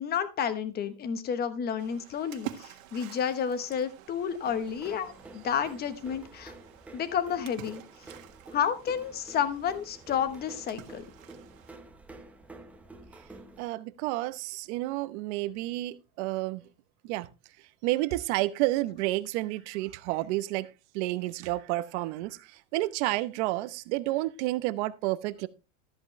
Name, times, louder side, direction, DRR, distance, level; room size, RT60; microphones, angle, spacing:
voice 1, 0.0-6.5 6.9-7.8 8.5-11.0, left 8 dB, 25° left, 1.1 m, -31 dB
Splash splatter, 1.8-11.8, right 13 dB, 85° right, 1.7 m, -48 dB
sound 1, 4.4-13.6, right 2 dB, 5° right, 0.7 m, -50 dB
voice 2, 13.6-16.6 17.0-17.3 17.8-20.7 20.9-25.5, right 18 dB, 60° right, 0.8 m, -30 dB
13.5 x 8.1 x 3.1 m
supercardioid pair, 160°, 39 cm